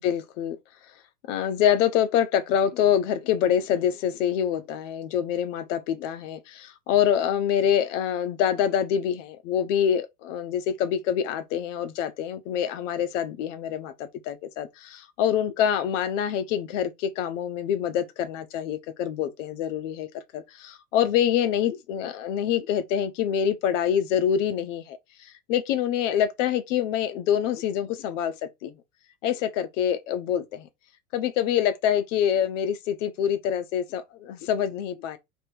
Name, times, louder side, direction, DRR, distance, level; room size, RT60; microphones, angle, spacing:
voice 1, 0.0-0.6 1.3-28.3 28.6-28.7 29.2-30.7 31.1-35.2, left 9 dB, 55° left, 0.8 m, -26 dB
3.5 x 2.9 x 4.5 m
hypercardioid pair, 95°, 46 cm